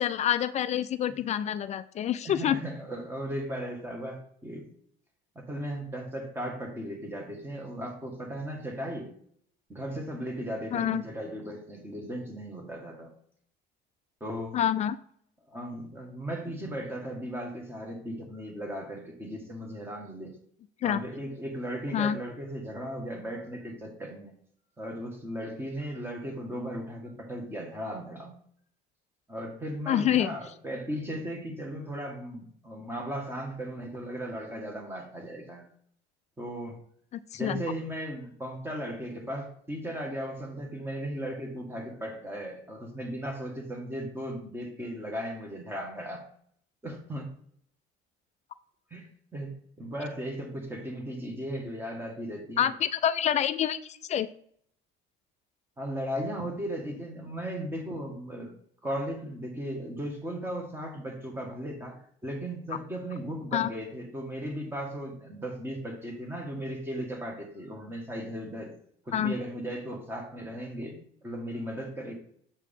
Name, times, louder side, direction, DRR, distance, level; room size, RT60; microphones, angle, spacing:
voice 1, 0.0-2.6 10.7-11.0 14.5-15.0 20.8-21.0 21.9-22.2 29.9-30.3 37.3-37.6 52.6-54.3 63.5-63.7 69.1-69.3, left 10 dB, 35° left, 13 dB, 0.4 m, -27 dB
voice 2, 2.2-4.7 5.3-9.1 9.7-13.1 14.2-14.6 15.5-20.3 20.8-24.3 24.8-28.3 29.3-35.7 36.4-36.8 37.3-46.2 46.8-47.3 48.9-52.7 55.8-58.5 58.8-68.7 69.0-72.1, equal, 10° right, 2 dB, 1.5 m, -36 dB
7.0 x 4.7 x 3.6 m, 0.63 s
cardioid pair, 145°, 20 cm